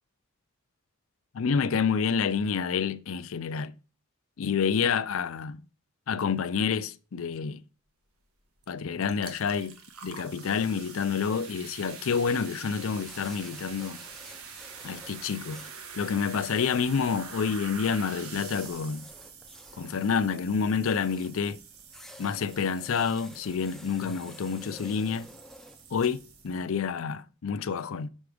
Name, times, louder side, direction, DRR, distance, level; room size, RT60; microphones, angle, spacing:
voice 1, 1.3-3.7 4.4-5.6 6.1-7.6 8.7-9.8 10.0-14.0 14.8-15.6 16.0-19.0 19.8-21.6 22.2-25.3 25.9-28.1, left 6 dB, 70° left, 0.4 m, -28 dB
sound 1, 8.6-8.7 9.0-26.7, right 6 dB, 90° right, 1.4 m, -46 dB
sound 2, 13.0-26.8, left 1 dB, ahead, 0.5 m, -52 dB
6.3 x 5.9 x 4.9 m
head